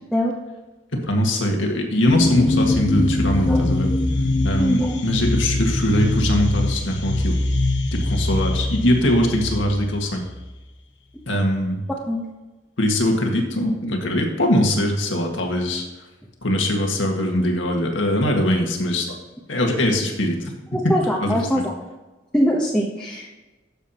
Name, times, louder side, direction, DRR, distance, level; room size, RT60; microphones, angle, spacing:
voice 1, 0.9-3.9 4.4-7.4 7.9-10.2 11.3-11.8 12.8-15.8 16.4-19.1 19.5-20.5 20.8-20.9 21.2-21.7, left 1 dB, 85° left, 1 dB, 1.8 m, -21 dB
sound 1, 2.1-10.6, left 2 dB, 65° left, 1.1 m, -23 dB
voice 2, 4.6-5.0 12.1-12.2 20.7-21.7 22.3-23.3, equal, 5° left, -4 dB, 1.0 m, -22 dB
12.0 x 7.3 x 3.0 m, 1.1 s
head